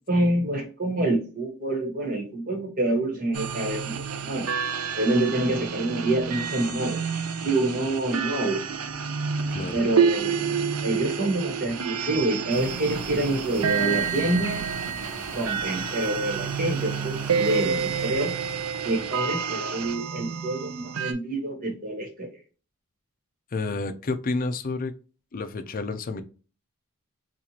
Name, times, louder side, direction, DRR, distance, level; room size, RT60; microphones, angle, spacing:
voice 1, 0.1-3.9 4.2-4.5 4.9-7.0 7.4-8.6 9.7-10.4 10.8-14.6 15.3-18.3 18.8-22.3, right 2 dB, 40° right, 2 dB, 1.4 m, -27 dB
sound 1, 3.3-21.1, right 6 dB, 80° right, 0.5 m, -29 dB
sound 2, 12.5-19.2, right 1 dB, 10° right, 0.9 m, -42 dB
voice 2, 23.5-24.9 25.3-26.2, left 3 dB, 40° left, 8 dB, 0.4 m, -30 dB
4.4 x 2.5 x 2.8 m, 0.36 s
head